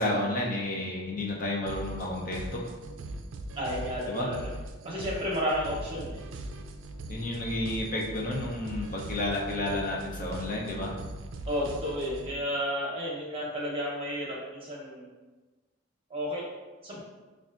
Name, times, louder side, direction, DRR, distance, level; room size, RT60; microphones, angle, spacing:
voice 1, 0.0-2.7 4.1-4.3 7.1-11.0, left 1 dB, 45° left, -1 dB, 0.7 m, -31 dB
sound 1, 1.7-12.3, right 2 dB, 75° right, 0.4 m, -40 dB
voice 2, 3.6-4.4 4.8-6.2 11.5-15.1 16.1-16.5 16.8-17.0, equal, 30° right, -5 dB, 0.8 m, -32 dB
5.3 x 2.4 x 2.4 m, 1.2 s
head